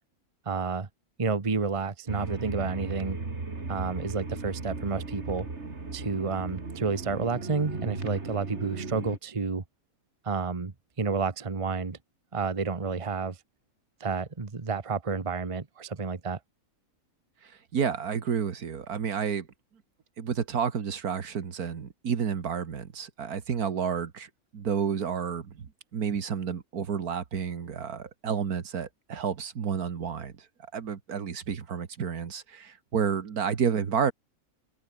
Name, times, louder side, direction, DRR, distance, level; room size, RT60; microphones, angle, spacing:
voice 1, 0.4-0.9 1.2-3.2 3.7-5.5 5.9-9.6 10.2-10.7 11.0-12.0 12.3-13.4 14.0-16.4, right 4 dB, 25° right, 1.2 m, -30 dB
sound 1, 2.1-9.2, right 3 dB, 50° right, 3.1 m, -36 dB
voice 2, 17.4-19.5 20.2-30.3 30.7-34.1, right 7 dB, 85° right, 2.1 m, -30 dB
open air
omnidirectional pair, 1.6 m